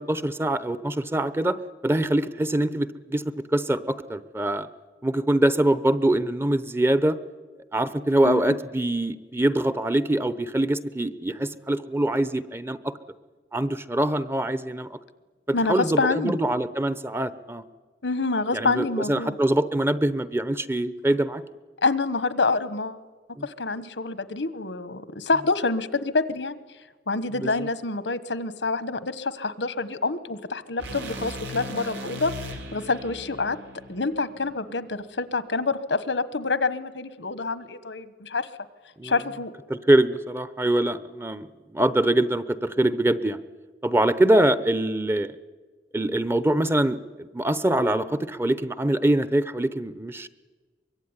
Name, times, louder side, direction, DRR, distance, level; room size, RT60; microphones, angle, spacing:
voice 1, 0.0-1.6 1.8-3.2 3.5-4.7 5.0-7.2 7.7-12.9 13.5-15.0 15.7-17.6 18.5-21.4 23.4-23.5 27.4-27.5 39.0-39.1 39.7-43.4 43.8-45.3 45.9-50.3, right 1 dB, 15° right, 14 dB, 0.8 m, -24 dB
voice 2, 8.2-8.6 15.5-16.4 18.0-19.3 21.8-23.0 23.4-26.6 27.1-32.3 32.7-33.6 33.9-38.5 39.0-39.5, left 3 dB, 85° left, 14 dB, 1.3 m, -27 dB
sound 1, 30.8-35.0, equal, 90° right, 3.8 m, -38 dB
24.0 x 22.5 x 9.8 m, 1.4 s
head